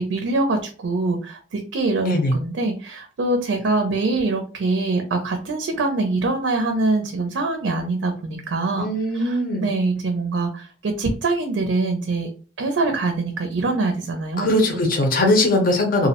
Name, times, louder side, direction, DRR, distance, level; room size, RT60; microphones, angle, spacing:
voice 1, 0.0-8.9 9.1-12.3 12.6-14.5, right 3 dB, 90° right, 4 dB, 0.4 m, -24 dB
voice 2, 2.0-2.3 8.8-9.7 14.4-16.1, left 1 dB, 50° left, 3 dB, 0.6 m, -20 dB
2.4 x 2.0 x 2.7 m, 0.39 s
head